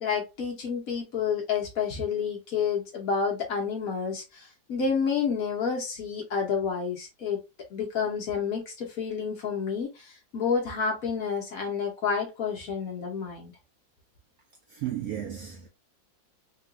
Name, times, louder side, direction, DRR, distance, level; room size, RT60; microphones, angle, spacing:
voice 1, 0.0-7.4 7.7-13.5, left 6 dB, 55° left, 1.1 m, -29 dB
voice 2, 14.7-15.7, right 11 dB, 75° right, 0.8 m, -34 dB
3.7 x 2.4 x 2.3 m
omnidirectional pair, 2.0 m